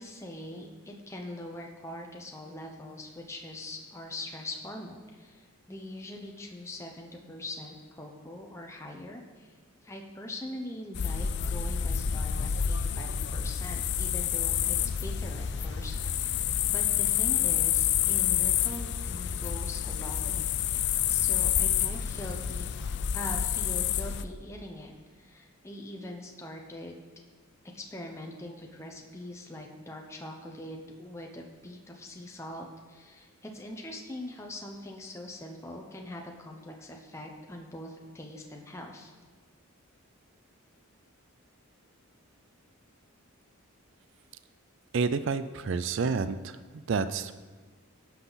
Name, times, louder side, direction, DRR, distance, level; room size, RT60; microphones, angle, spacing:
voice 1, 0.0-9.5 9.8-22.7 23.1-27.0 27.7-39.1, left 1 dB, 15° left, 1 dB, 0.8 m, -42 dB
sound 1, 10.9-24.2, left 9 dB, 50° left, 0.4 m, -28 dB
voice 2, 44.9-46.6 46.9-47.3, right 5 dB, 55° right, 12 dB, 0.4 m, -29 dB
16.0 x 5.9 x 4.0 m, 1.4 s
head